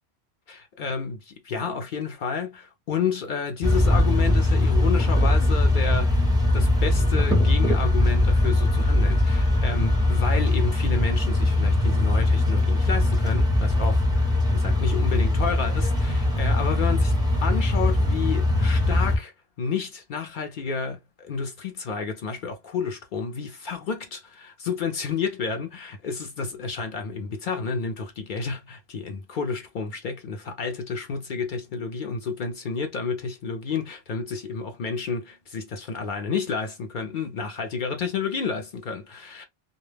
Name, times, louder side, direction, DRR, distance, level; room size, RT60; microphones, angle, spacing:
voice 1, 0.5-6.3 6.5-17.1 17.4-19.3 19.6-39.4, left 5 dB, 65° left, 0.5 m, -30 dB
sound 1, 3.6-19.2, left 2 dB, 5° right, 0.4 m, -21 dB
2.2 x 2.0 x 3.1 m
omnidirectional pair, 1.3 m